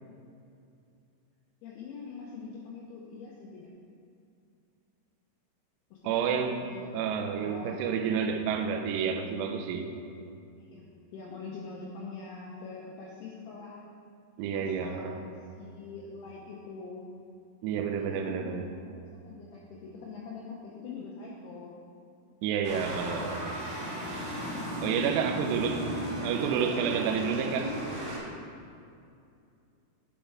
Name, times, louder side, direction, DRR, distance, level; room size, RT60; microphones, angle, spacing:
voice 1, 1.6-3.7 5.9-6.4 6.7-7.1 7.4-7.8 9.1-9.2 10.6-13.8 14.5-17.0 17.9-18.8 19.1-21.8 25.3-25.9 26.6-27.3, left 4 dB, 80° left, -4 dB, 2.4 m, -44 dB
voice 2, 6.0-6.5 6.9-9.9 14.4-15.2 17.6-18.7 22.4-23.6 24.8-27.7, right 7 dB, 80° right, 4 dB, 2.5 m, -30 dB
sound 1, 22.6-28.2, right 1 dB, 60° right, 3.2 m, -35 dB
8.8 x 5.4 x 4.6 m, 2.5 s
omnidirectional pair, 5.4 m